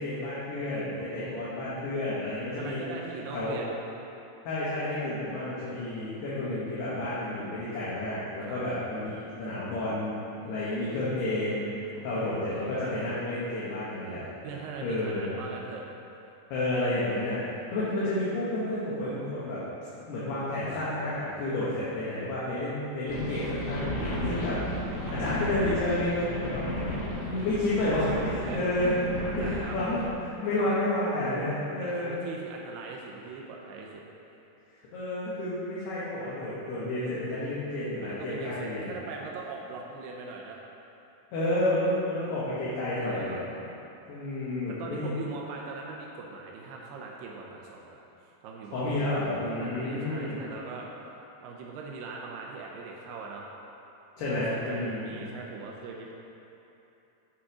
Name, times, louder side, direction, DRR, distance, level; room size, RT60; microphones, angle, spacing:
voice 1, 0.0-2.8 3.3-3.6 4.4-11.7 12.0-14.3 14.8-15.4 16.5-17.4 17.7-19.6 20.1-24.6 25.2-29.0 29.4-32.2 34.9-38.9 41.3-43.4 44.1-45.2 48.7-50.4 54.2-55.3, left 1 dB, 65° left, -10 dB, 3.3 m, -30 dB
voice 2, 0.9-1.8 2.6-3.7 8.5-8.6 12.0-12.7 14.4-15.8 24.7-25.6 27.2-27.5 28.1-28.7 29.3-29.8 30.6-30.8 31.8-34.0 38.0-40.6 43.0-43.4 44.7-49.1 49.5-50.9 51.4-53.5 54.2-56.1, right 4 dB, 90° right, -1 dB, 2.3 m, -41 dB
sound 1, 23.1-30.1, equal, 80° left, 1.3 m, -34 dB
8.7 x 7.3 x 4.9 m, 3.0 s
omnidirectional pair, 5.6 m